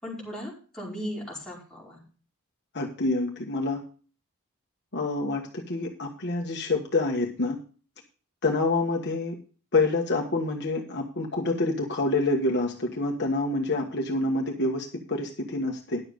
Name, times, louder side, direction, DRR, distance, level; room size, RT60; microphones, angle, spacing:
voice 1, 0.0-2.0, equal, 5° left, -6 dB, 4.8 m, -37 dB
voice 2, 2.7-3.8 4.9-7.6 8.4-9.4 9.7-16.0, left 2 dB, 50° left, 1 dB, 1.4 m, -27 dB
11.0 x 7.2 x 5.2 m, 0.38 s
head